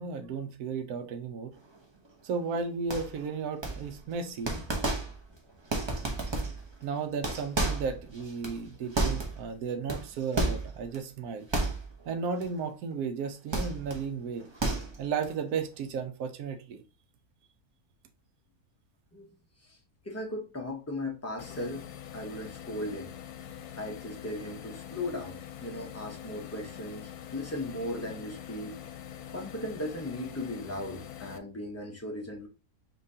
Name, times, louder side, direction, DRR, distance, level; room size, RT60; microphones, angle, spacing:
voice 1, 0.0-1.5 2.2-4.6 6.8-11.5 12.1-14.5 15.0-16.8, right 5 dB, 75° right, 1.1 m, -34 dB
sound 1, 2.9-3.2 3.6-4.1 4.4-5.3 5.7-6.7 7.1-9.5 9.9-11.0 11.5-12.1 12.4-12.6 13.5-14.0 14.4-15.2, right 2 dB, 30° right, 0.5 m, -31 dB
voice 2, 20.0-21.8 22.1-23.1 23.8-28.7 29.3-32.5, left 1 dB, 15° left, 0.7 m, -37 dB
sound 2, 21.4-31.4, left 10 dB, 90° left, 1.1 m, -44 dB
5.4 x 2.9 x 2.7 m
omnidirectional pair, 1.6 m